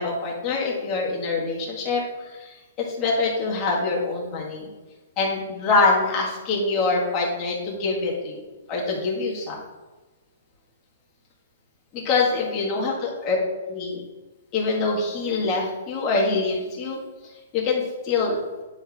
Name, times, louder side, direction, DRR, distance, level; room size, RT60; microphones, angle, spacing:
voice 1, 0.0-4.7 5.2-9.6 11.9-13.4 13.7-14.0 14.5-17.0 17.5-18.4, left 3 dB, 25° left, -3 dB, 1.8 m, -25 dB
9.7 x 4.4 x 3.6 m, 1.2 s
hypercardioid pair, 160°, 0 cm